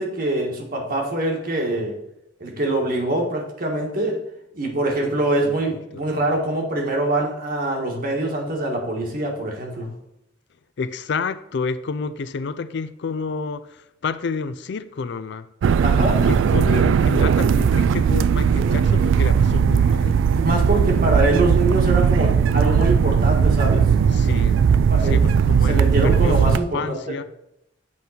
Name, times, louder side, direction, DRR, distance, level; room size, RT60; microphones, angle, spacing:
voice 1, 0.0-2.0 2.4-4.2 4.5-9.9 15.8-16.2 20.3-23.9 24.9-25.2 25.7-27.0, right 2 dB, 50° right, 1.7 m, -24 dB
voice 2, 5.2-5.6 5.9-6.0 10.8-15.5 16.0-20.2 24.1-24.6 25.0-27.2, left 4 dB, 65° left, 0.4 m, -30 dB
sound 1, 15.6-26.6, right 6 dB, 85° right, 0.3 m, -18 dB
7.6 x 3.8 x 5.6 m
head